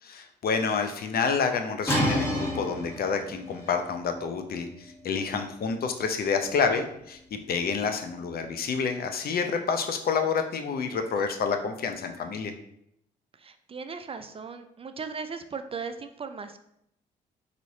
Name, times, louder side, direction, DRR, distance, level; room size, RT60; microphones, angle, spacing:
voice 1, 0.0-12.5, left 5 dB, 45° left, 6 dB, 0.6 m, -28 dB
sound 1, 1.9-7.5, equal, 10° left, 1.4 m, -32 dB
voice 2, 13.4-16.6, right 5 dB, 25° right, 8 dB, 0.4 m, -38 dB
4.0 x 3.0 x 2.8 m, 0.75 s
hypercardioid pair, 45°, 21 cm